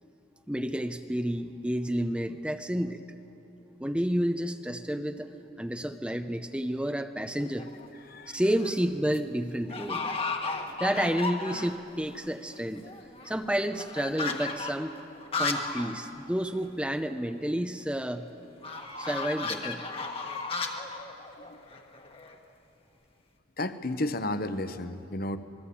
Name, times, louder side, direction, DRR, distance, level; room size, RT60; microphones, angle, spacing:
voice 1, 0.5-3.0 3.8-7.7 8.3-10.0 10.8-12.9 13.2-14.9 15.4-18.2 19.0-19.8, equal, 5° right, 9 dB, 0.6 m, -30 dB
sound 1, 7.4-7.8 8.4-8.8 9.1-9.2 9.7-11.9 12.2-12.3 12.5-15.9 16.2-16.3 16.6-16.7 18.6-22.4, left 3 dB, 30° left, 1.5 m, -34 dB
voice 2, 7.9-8.4 10.4-10.8 18.6-18.9 21.3-21.8 23.6-25.4, left 1 dB, 45° left, 10 dB, 1.1 m, -34 dB
27.0 x 21.0 x 8.6 m, 2.9 s
head